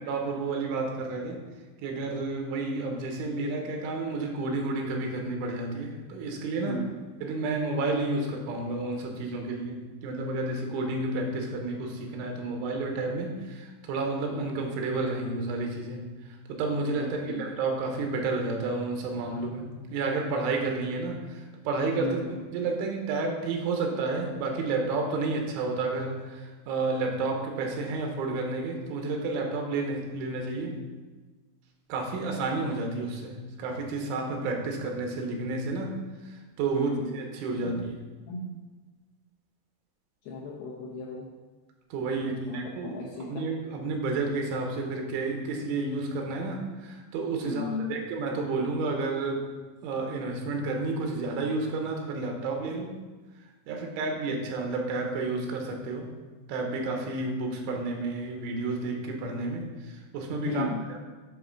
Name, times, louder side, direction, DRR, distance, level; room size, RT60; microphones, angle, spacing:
voice 1, 0.1-1.4 1.8-6.8 7.2-22.2 22.5-30.8 31.9-36.0 36.3-38.0 41.9-43.0 43.3-49.5 49.8-53.0 53.7-56.1 56.5-61.0, right 3 dB, 90° right, 2 dB, 3.5 m, -31 dB
voice 2, 17.0-17.5 22.0-22.4 36.7-37.1 37.6-37.8 38.3-38.5 40.3-41.3 42.2-43.5 47.4-48.0 60.4-60.8, left 2 dB, 80° left, -3 dB, 2.2 m, -35 dB
10.5 x 3.8 x 6.0 m, 1.3 s
omnidirectional pair, 5.4 m